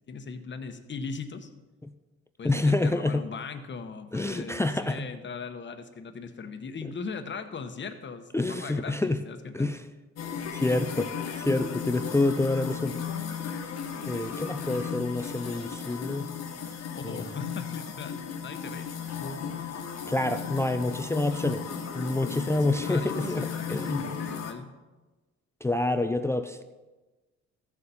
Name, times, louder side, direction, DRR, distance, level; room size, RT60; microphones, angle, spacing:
voice 1, 0.1-1.5 2.4-9.7 16.9-18.9 22.5-24.7, left 5 dB, 40° left, 8 dB, 1.0 m, -39 dB
voice 2, 2.4-3.2 4.1-5.0 8.3-9.2 9.5-9.8 10.5-13.0 14.1-16.3 17.0-17.3 20.1-21.6 21.9-24.0 25.6-26.6, left 2 dB, 10° left, 10 dB, 0.4 m, -27 dB
sound 1, 10.2-24.5, left 7 dB, 60° left, 1.4 m, -35 dB
14.0 x 6.9 x 4.2 m, 1.2 s
cardioid pair, 90°, 30 cm